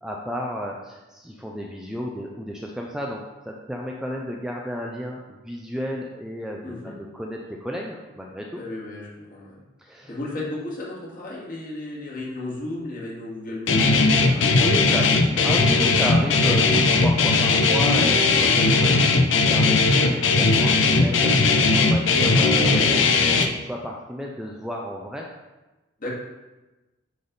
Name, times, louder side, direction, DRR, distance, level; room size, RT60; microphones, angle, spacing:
voice 1, 0.0-6.8 7.1-8.6 9.8-10.1 14.5-25.3, equal, 5° right, -1 dB, 0.4 m, -32 dB
voice 2, 6.6-6.9 8.5-9.6 10.1-15.1 26.0-26.1, left 2 dB, 45° left, -6 dB, 2.1 m, -34 dB
Guitar, 13.7-23.4, left 3 dB, 65° left, 0.6 m, -18 dB
9.4 x 3.5 x 4.0 m, 1.1 s
head